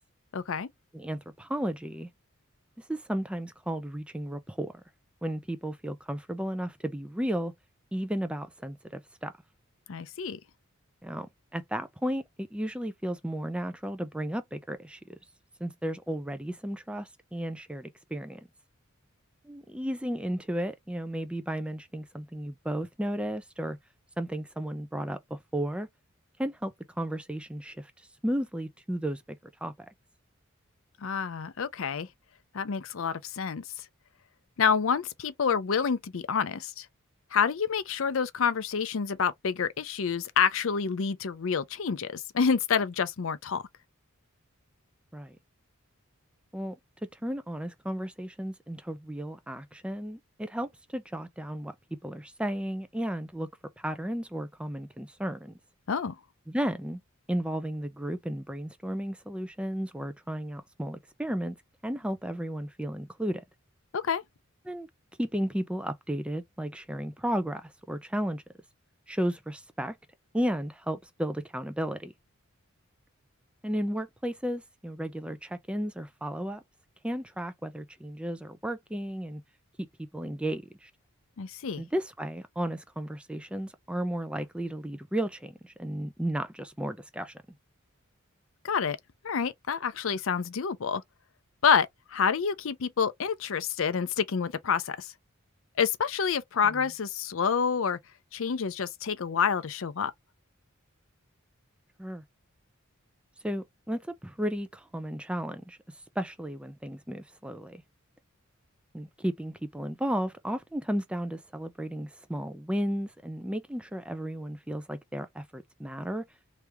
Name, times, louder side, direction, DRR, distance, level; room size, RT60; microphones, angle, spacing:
voice 1, 0.3-0.7 9.9-10.4 31.0-32.1 32.5-33.6 34.6-36.9 37.3-43.6 55.9-56.2 63.9-64.2 81.4-81.8 88.6-89.0 89.2-91.0 91.6-95.1 95.8-98.0 98.3-100.1, left 6 dB, 65° left, 0.5 m, -28 dB
voice 2, 0.9-2.1 2.8-4.7 5.2-7.5 7.9-9.3 11.0-15.2 15.6-18.4 19.4-23.8 24.2-25.9 26.4-27.9 28.2-29.7 45.1-45.4 46.5-46.8 47.2-51.7 52.0-53.5 53.8-55.6 56.5-57.0 57.3-61.6 61.8-63.4 64.7-64.9 65.2-68.4 69.1-70.0 70.3-72.1 73.6-76.6 77.0-79.4 80.1-80.9 81.8-87.4 96.6-96.8 102.0-102.2 103.4-105.8 106.2-107.8 108.9-116.3, equal, 5° right, 0.4 m, -34 dB
3.3 x 3.1 x 3.4 m
head